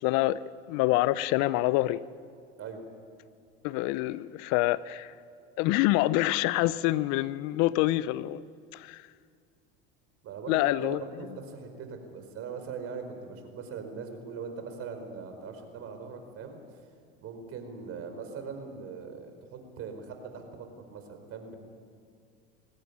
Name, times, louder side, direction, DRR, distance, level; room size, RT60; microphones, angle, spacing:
voice 1, 0.0-0.4 0.7-2.1 3.6-5.1 5.6-8.4 8.7-9.0 10.5-11.4, left 17 dB, 60° left, 18 dB, 0.7 m, -26 dB
voice 2, 10.2-16.6 17.2-21.6, right 5 dB, 45° right, 6 dB, 4.8 m, -41 dB
21.5 x 17.5 x 9.9 m, 2.2 s
hypercardioid pair, 90°, 31 cm